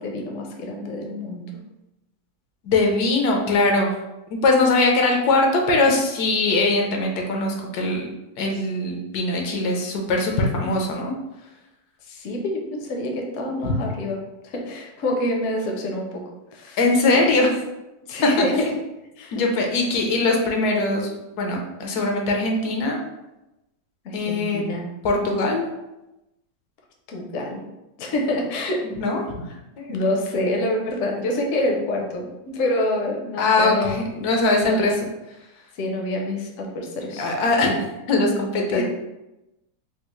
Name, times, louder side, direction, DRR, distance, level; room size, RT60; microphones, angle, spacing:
voice 1, 0.0-1.5 12.1-16.2 16.5-16.8 17.1-17.3 18.0-18.7 19.2-19.4 24.0-24.8 27.1-27.6 28.0-28.8 29.9-34.0 34.6-35.0 35.7-37.3 38.7-38.8, left 1 dB, 65° left, 0 dB, 0.8 m, -27 dB
voice 2, 2.6-3.9 4.3-8.1 8.4-11.1 13.6-13.7 16.8-17.6 18.4-18.7 19.3-23.0 24.1-24.6 25.0-25.6 29.0-29.2 29.8-30.0 33.4-34.9 37.2-38.8, left 2 dB, 85° left, 1 dB, 1.2 m, -21 dB
3.6 x 2.3 x 3.0 m, 0.95 s
omnidirectional pair, 1.7 m